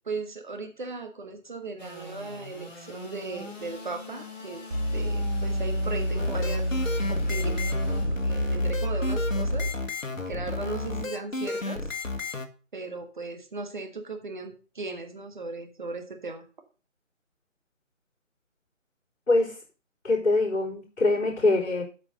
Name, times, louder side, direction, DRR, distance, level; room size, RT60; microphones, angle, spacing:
voice 1, 0.0-4.6 4.9-6.7 7.1-9.7 10.3-11.9 12.7-16.4, right 3 dB, 40° right, 6 dB, 1.5 m, -37 dB
Engine / Sawing, 1.8-8.1, equal, 35° left, 3.4 m, -42 dB
sound 1, 4.7-9.7, equal, 60° right, 3.2 m, -28 dB
sound 2, 6.2-12.5, left 3 dB, 80° left, 1.5 m, -33 dB
voice 2, 19.3-19.6 20.0-21.8, left 2 dB, 60° left, -8 dB, 4.2 m, -23 dB
8.5 x 5.2 x 6.7 m, 0.35 s
figure-of-eight pair, 160°, 38 cm